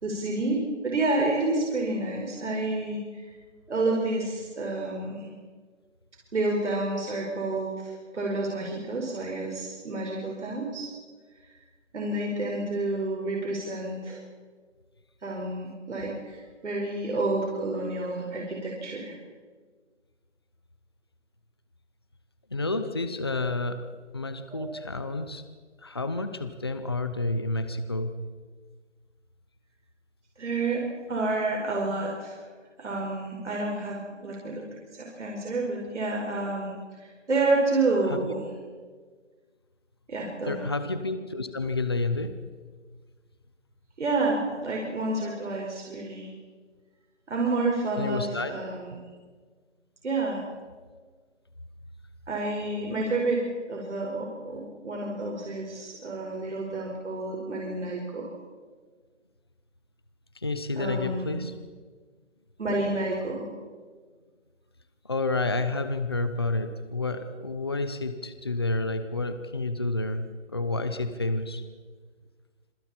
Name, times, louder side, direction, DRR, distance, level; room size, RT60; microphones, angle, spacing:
voice 1, 0.0-3.0 3.7-5.3 6.3-10.9 11.9-14.2 15.2-19.1 24.5-24.7 30.4-30.8 31.1-32.5 32.8-34.6 34.9-36.7 37.0-38.5 40.1-40.6 44.0-46.3 47.3-49.0 50.0-50.4 52.3-53.4 53.7-58.3 60.8-61.4 62.6-63.5, right 2 dB, 70° right, -1 dB, 5.1 m, -29 dB
voice 2, 22.5-23.8 24.1-25.4 25.8-28.1 38.1-38.3 40.5-42.3 48.0-48.5 60.4-61.5 65.0-70.2 70.5-71.6, left 2 dB, 20° left, 10 dB, 0.7 m, -29 dB
26.5 x 25.0 x 4.4 m, 1.5 s
hypercardioid pair, 170°, 36 cm